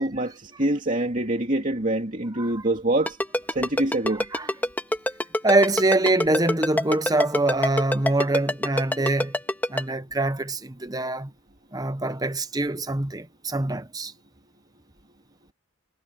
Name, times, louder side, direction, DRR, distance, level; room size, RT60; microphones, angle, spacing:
voice 1, 0.0-3.2 3.5-4.3, right 1 dB, 35° right, 2.6 m, -25 dB
Ringtone, 3.1-9.8, left 1 dB, 10° left, 2.4 m, -24 dB
voice 2, 5.4-9.3 9.7-11.3 11.7-14.1, right 2 dB, 15° right, 1.0 m, -24 dB
head